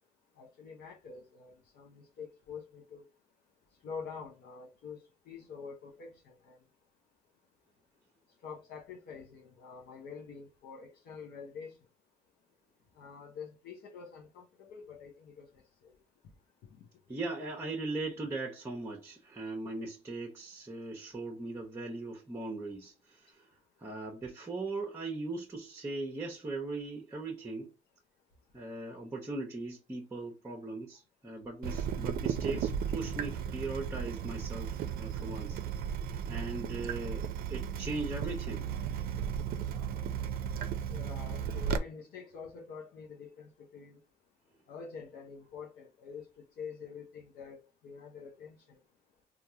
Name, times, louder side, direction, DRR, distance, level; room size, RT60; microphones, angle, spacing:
voice 1, 0.4-3.1 3.8-6.6 8.4-11.7 13.0-15.5 15.8-15.9 16.7-16.9 40.9-44.0 44.7-46.3 46.6-48.6, left 6 dB, 70° left, 0.8 m, -47 dB
voice 2, 17.1-23.5 23.8-27.7 28.5-35.6 36.0-38.7, right 2 dB, 15° right, 0.8 m, -39 dB
Water tap faucet / Drip, 31.6-41.8, right 8 dB, 60° right, 0.5 m, -35 dB
3.3 x 2.4 x 2.7 m
cardioid pair, 110°, 17 cm